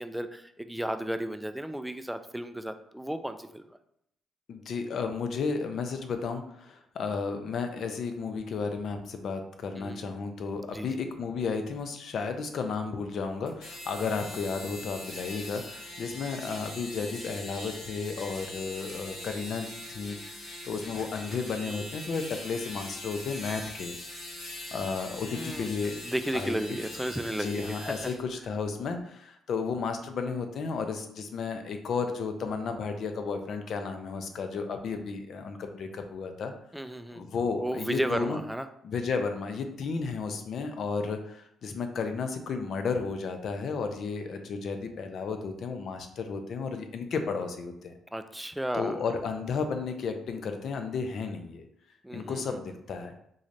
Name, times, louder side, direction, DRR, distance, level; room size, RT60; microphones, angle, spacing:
voice 1, 0.0-3.8 9.8-10.1 10.7-11.1 21.3-21.7 25.3-25.7 26.0-28.1 36.7-37.3 37.6-38.7 48.1-49.0 52.0-52.4, right 1 dB, 5° right, 9 dB, 0.3 m, -34 dB
voice 2, 4.5-20.2 20.6-23.9 24.7-26.0 26.3-26.8 27.4-36.5 37.2-38.4 38.8-47.9 48.7-51.6 52.1-53.1, left 5 dB, 60° left, 6 dB, 0.5 m, -33 dB
sound 1, 13.5-28.2, left 1 dB, 85° left, 1.3 m, -42 dB
3.8 x 3.1 x 2.6 m, 0.74 s
cardioid pair, 90°, 0 cm